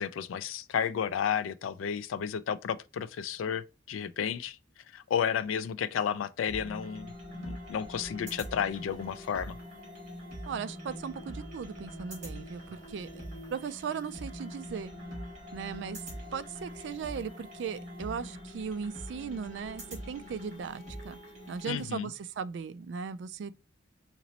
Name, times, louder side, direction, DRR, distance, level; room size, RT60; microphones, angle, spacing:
voice 1, 0.0-4.6 4.9-9.6 21.6-22.1, left 8 dB, 85° left, 0.3 m, -32 dB
sound 1, 6.5-21.8, equal, 35° right, 2.1 m, -43 dB
voice 2, 10.5-13.2 13.5-14.9 15.5-16.0 16.3-21.2 21.5-23.6, right 6 dB, 65° right, 0.3 m, -38 dB
3.9 x 3.0 x 2.9 m
head